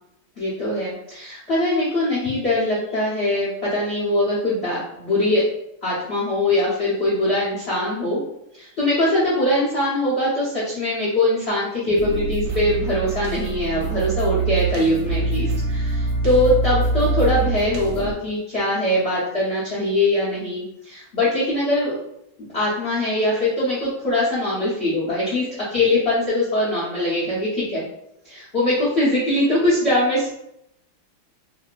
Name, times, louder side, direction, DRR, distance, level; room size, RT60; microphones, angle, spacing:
voice 1, 0.4-5.5 5.8-8.2 8.5-21.9 22.5-27.8 28.2-30.3, left 1 dB, 55° left, -9 dB, 0.7 m, -22 dB
sound 1, 12.0-18.1, right 3 dB, 70° right, 1.1 m, -24 dB
3.0 x 2.7 x 2.4 m, 0.80 s
omnidirectional pair, 2.3 m